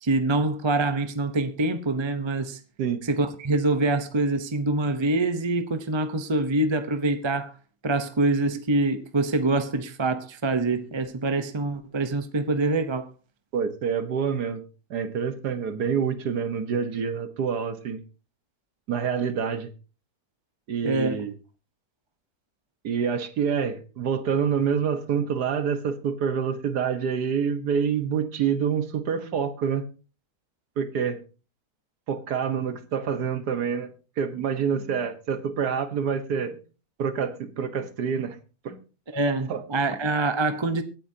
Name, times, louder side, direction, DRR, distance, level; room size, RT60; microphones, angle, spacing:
voice 1, 0.0-2.6 3.1-7.5 7.8-13.1 20.8-21.2 39.1-40.8, right 2 dB, 25° right, 0.6 m, -25 dB
voice 2, 13.5-14.6 14.9-18.0 18.9-19.7 20.7-21.3 22.8-29.9 30.8-31.2 32.1-36.6 37.0-38.4 38.7-38.8 39.5-39.6, right 7 dB, 80° right, 1.8 m, -27 dB
24.0 x 8.9 x 2.8 m
omnidirectional pair, 1.7 m